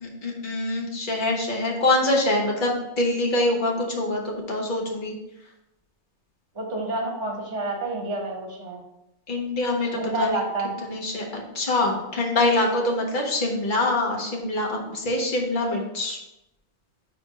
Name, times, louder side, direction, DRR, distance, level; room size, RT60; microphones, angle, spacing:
voice 1, 0.0-5.1 9.3-10.4 10.8-16.2, left 2 dB, 35° left, -1 dB, 1.3 m, -25 dB
voice 2, 6.6-8.8 9.9-10.7, right 2 dB, 55° right, 0 dB, 1.7 m, -28 dB
4.9 x 4.6 x 5.0 m, 0.88 s
omnidirectional pair, 1.5 m